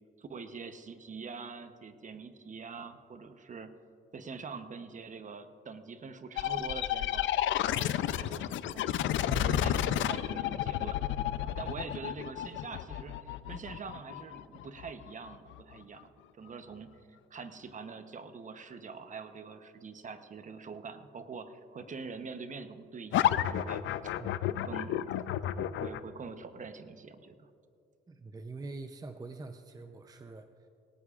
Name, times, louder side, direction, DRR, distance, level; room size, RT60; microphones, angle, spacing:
voice 1, 0.2-3.7 4.1-7.3 7.7-9.0 9.3-11.0 11.4-16.1 16.4-16.9 17.3-24.1 24.5-25.1 25.5-27.5, right 5 dB, 40° right, 9 dB, 0.9 m, -44 dB
sound 1, 6.4-15.8 23.1-26.0, left 11 dB, 75° left, 0.5 m, -31 dB
voice 2, 9.2-9.7 11.6-11.8 24.2-24.4 28.1-30.5, right 4 dB, 20° right, 7 dB, 0.6 m, -43 dB
18.5 x 18.0 x 2.5 m, 2.5 s
cardioid pair, 90°, 20 cm